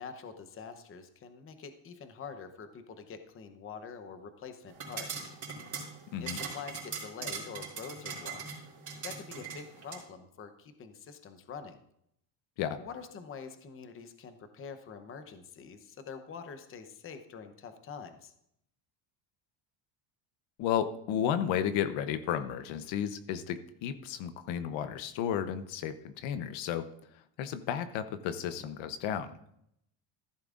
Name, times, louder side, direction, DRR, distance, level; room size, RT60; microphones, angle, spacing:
voice 1, 0.0-5.3 6.2-8.4 9.0-11.8 12.8-18.3, left 6 dB, 25° left, 9 dB, 0.8 m, -45 dB
sound 1, 4.7-10.0, right 5 dB, 35° right, 3.8 m, -41 dB
voice 2, 20.6-26.9 27.4-29.3, left 9 dB, 70° left, 11 dB, 0.9 m, -33 dB
14.5 x 12.0 x 2.5 m, 0.73 s
cardioid pair, 150°, 47 cm